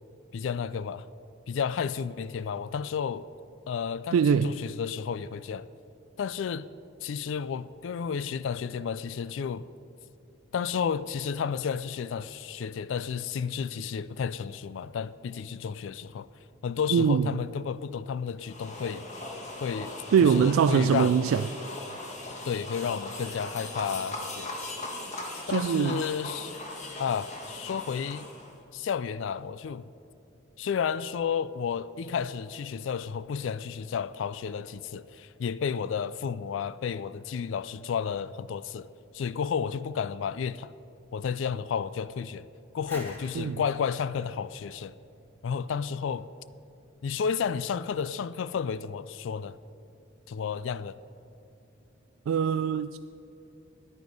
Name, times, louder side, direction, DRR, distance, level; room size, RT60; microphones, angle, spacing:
voice 1, 0.3-1.1 1.5-3.3 3.7-5.7 6.2-6.7 7.0-9.7 10.5-16.3 16.6-19.1 19.6-19.9 20.2-21.2 22.4-24.5 25.5-26.6 27.0-28.3 28.7-29.9 30.6-38.9 39.1-40.7 41.1-42.5 42.7-44.9 45.4-46.3 47.0-49.6 50.3-50.9, left 6 dB, 65° left, 0.3 m, -32 dB
voice 2, 4.1-4.6 16.9-17.3 20.1-21.5 25.5-26.0 43.4-43.6 52.3-53.0, right 7 dB, 85° right, 0.3 m, -23 dB
sound 1, 18.5-28.6, left 2 dB, 35° left, 1.6 m, -39 dB
sound 2, 42.9-45.6, left 1 dB, 10° left, 1.8 m, -48 dB
14.5 x 9.6 x 5.3 m
head